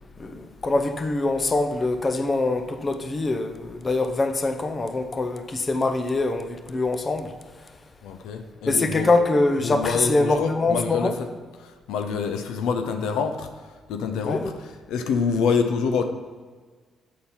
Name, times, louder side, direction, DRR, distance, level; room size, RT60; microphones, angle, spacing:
voice 1, 0.2-7.3 8.7-11.1 14.2-14.5, left 2 dB, 30° left, 0.7 m, -24 dB
voice 2, 8.0-9.1 9.6-11.3 11.6-13.5 13.9-16.1, left 5 dB, 90° left, 0.6 m, -26 dB
8.4 x 4.3 x 5.5 m
cardioid pair, 90°, 0 cm